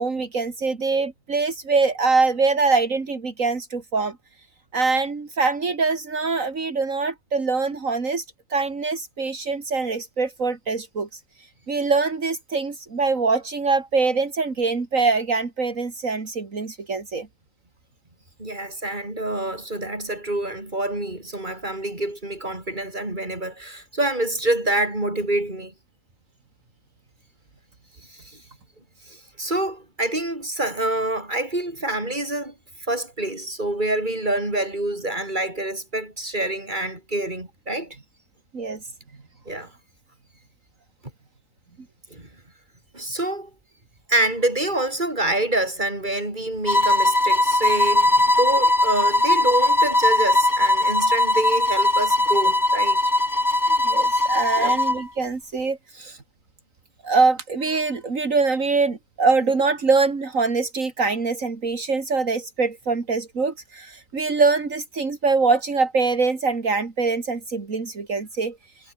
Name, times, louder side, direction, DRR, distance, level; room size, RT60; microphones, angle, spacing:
voice 1, 0.0-4.2 4.7-8.2 8.5-11.2 11.7-17.3 38.5-38.8 53.8-56.2 57.0-68.6, right 4 dB, 70° right, 3.0 m, -23 dB
voice 2, 18.4-25.7 28.1-28.4 29.1-32.5 32.9-38.0 39.5-39.7 42.1-42.3 42.9-43.5 44.1-53.0 54.6-54.8, right 1 dB, 35° right, 6.1 m, -26 dB
sound 1, 46.7-55.0, left 1 dB, 15° left, 1.8 m, -19 dB
omnidirectional pair, 1.4 m